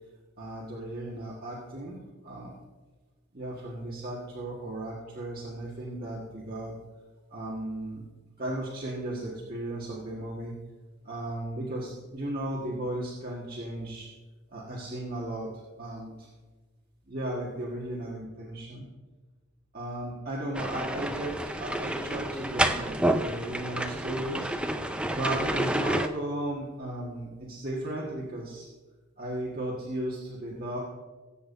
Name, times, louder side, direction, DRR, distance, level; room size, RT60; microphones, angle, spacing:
voice 1, 0.4-2.0 2.2-2.6 3.3-6.7 7.3-8.0 8.4-10.5 11.0-14.1 14.5-15.5 15.8-16.3 17.1-18.8 19.7-24.5 25.1-28.7 29.2-30.8, right 1 dB, 45° right, -5 dB, 1.6 m, -35 dB
sound 1, 20.6-26.1, right 1 dB, 5° right, 0.4 m, -29 dB
20.5 x 8.4 x 2.6 m, 1.3 s
head